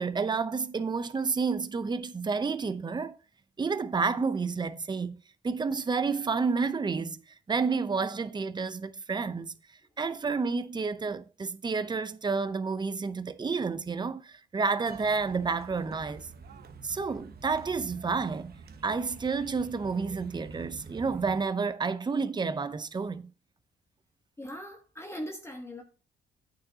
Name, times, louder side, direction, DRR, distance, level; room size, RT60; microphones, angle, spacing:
voice 1, 0.0-3.2 3.6-5.2 5.4-7.2 7.5-9.5 10.0-16.3 16.8-18.6 18.8-23.3, right 4 dB, 20° right, 0.7 m, -30 dB
sound 1, 14.9-21.4, right 5 dB, 50° right, 1.1 m, -47 dB
voice 2, 24.4-25.8, equal, 15° left, 1.2 m, -40 dB
8.9 x 6.7 x 2.8 m
cardioid pair, 90°, 20 cm